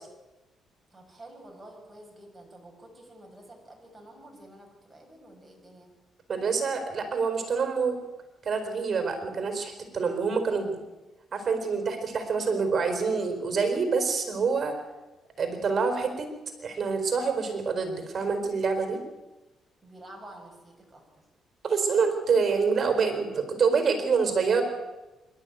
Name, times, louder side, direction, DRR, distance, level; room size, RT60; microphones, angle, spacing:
voice 1, 0.9-5.9 19.8-21.2, right 1 dB, 10° right, 0 dB, 7.4 m, -49 dB
voice 2, 6.3-8.0 8.4-10.8 11.3-14.8 15.4-16.3 16.6-19.0 21.6-24.6, right 5 dB, 45° right, 7 dB, 4.3 m, -26 dB
25.5 x 12.0 x 9.3 m, 1.1 s
cardioid pair, 90°, 0 cm